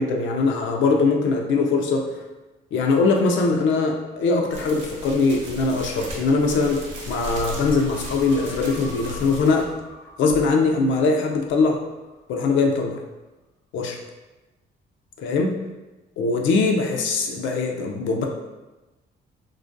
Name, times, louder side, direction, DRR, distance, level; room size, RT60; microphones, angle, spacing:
voice 1, 0.0-2.1 2.7-9.7 10.2-11.8 12.3-13.0 13.7-14.0 15.2-15.6 16.2-18.2, left 3 dB, 75° left, 2 dB, 0.4 m, -21 dB
sound 1, 4.5-9.7, equal, 70° right, 0.7 m, -36 dB
sound 2, 7.4-12.1 12.5-12.6, left 2 dB, 15° left, 0.4 m, -43 dB
2.3 x 2.2 x 2.5 m, 1.1 s
cardioid pair, 90°, 20 cm